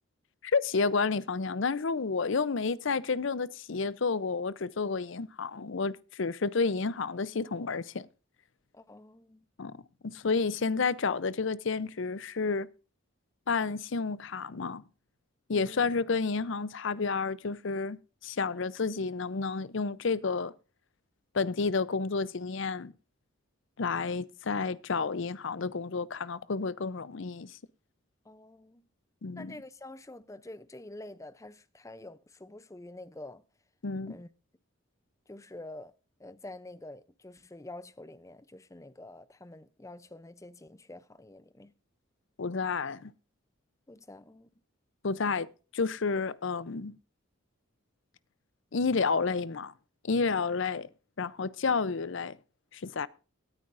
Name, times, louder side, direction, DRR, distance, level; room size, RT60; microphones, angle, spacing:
voice 1, 0.4-8.1 9.6-9.8 10.0-12.7 13.5-14.8 15.5-20.5 21.3-22.9 23.8-27.6 29.2-29.5 33.8-34.2 42.4-43.1 45.0-45.5 45.7-46.9 48.7-49.7 50.0-50.9 51.2-52.4 52.7-53.1, left 4 dB, 60° left, 0.6 m, -30 dB
voice 2, 8.7-9.4 15.5-15.9 28.2-28.8 29.3-33.4 34.1-34.3 35.3-35.9 36.2-41.7 43.9-44.5, left 2 dB, 15° left, 0.5 m, -47 dB
18.0 x 9.4 x 2.5 m
head